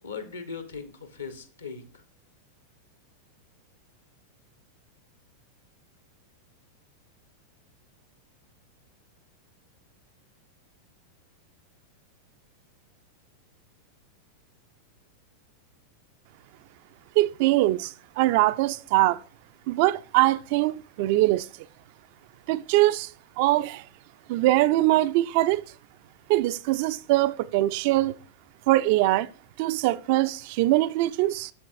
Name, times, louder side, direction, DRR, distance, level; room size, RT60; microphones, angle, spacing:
voice 1, 0.0-2.0, left 5 dB, 75° left, 1.3 m, -39 dB
voice 2, 17.2-19.2 19.7-21.5 22.5-23.1 23.4-23.8 24.3-25.6 26.3-28.2 28.7-29.3 29.6-31.5, right 17 dB, 45° right, 0.3 m, -22 dB
8.6 x 7.1 x 2.5 m
figure-of-eight pair, 90°, 0 cm